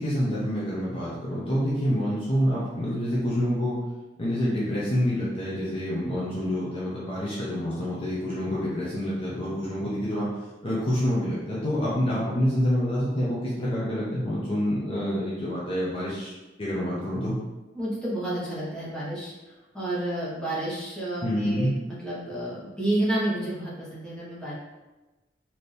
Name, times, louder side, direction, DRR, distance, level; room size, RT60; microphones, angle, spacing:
voice 1, 0.0-3.8 4.2-10.3 10.6-16.3 16.6-17.4 21.2-21.8, equal, 35° left, -8 dB, 0.8 m, -27 dB
voice 2, 17.7-19.3 19.7-24.5, right 1 dB, 5° left, -8 dB, 1.4 m, -30 dB
4.3 x 2.9 x 3.3 m, 1.1 s
head